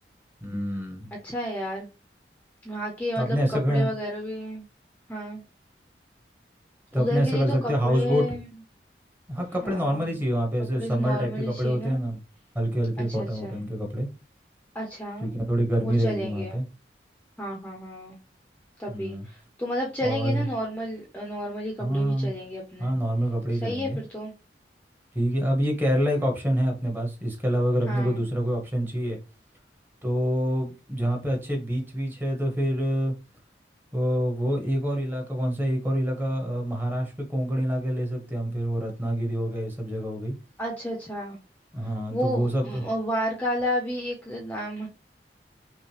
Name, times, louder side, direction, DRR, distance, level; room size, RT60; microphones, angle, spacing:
voice 1, 0.4-1.1 3.2-3.9 6.9-8.4 9.3-12.2 12.5-14.1 15.2-16.6 18.9-19.3 20.0-20.5 21.8-22.3 22.8-24.0 25.1-29.2 30.0-33.1 33.9-40.3 41.7-42.8, equal, 10° right, 1.0 m, -26 dB
voice 2, 1.2-1.9 2.6-4.6 5.1-5.4 6.9-8.5 9.6-10.1 10.8-12.0 13.0-13.6 14.7-15.3 15.8-16.6 17.4-18.2 18.8-23.0 23.6-24.3 27.9-28.2 40.6-41.4 42.1-44.9, equal, 10° left, 0.6 m, -31 dB
5.6 x 2.1 x 3.2 m
head